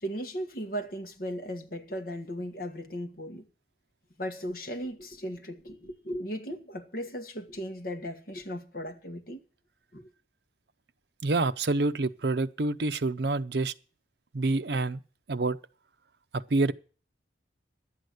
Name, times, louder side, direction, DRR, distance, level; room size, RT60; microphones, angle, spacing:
voice 1, 0.0-3.5 4.2-9.4 9.9-10.0, equal, 50° left, 1.6 m, -37 dB
voice 2, 11.2-13.7 14.3-15.0 15.3-15.6 16.5-16.7, right 2 dB, 55° right, 0.6 m, -27 dB
11.5 x 8.2 x 7.9 m
head